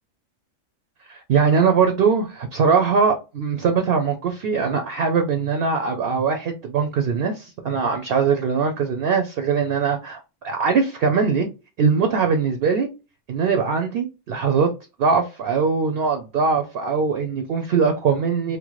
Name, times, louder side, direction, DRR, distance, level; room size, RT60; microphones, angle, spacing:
voice 1, 1.1-11.5 11.8-12.9 13.3-14.7 15.0-18.6, right 5 dB, 60° right, 0.6 m, -21 dB
2.9 x 2.1 x 3.0 m
omnidirectional pair, 1.3 m